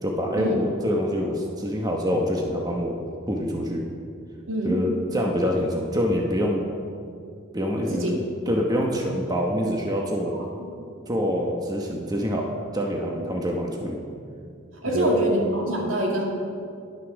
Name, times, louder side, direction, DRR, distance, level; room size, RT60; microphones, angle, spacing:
voice 1, 0.0-3.0 3.3-3.8 4.6-6.6 7.5-8.2 8.5-10.3 11.1-14.0 14.9-15.1, equal, 20° right, 0 dB, 0.9 m, -25 dB
voice 2, 4.5-4.8 7.9-8.1 10.3-10.5 13.1-13.2 14.8-16.2, right 1 dB, 80° right, -1 dB, 2.3 m, -25 dB
11.0 x 8.2 x 6.1 m, 2.4 s
head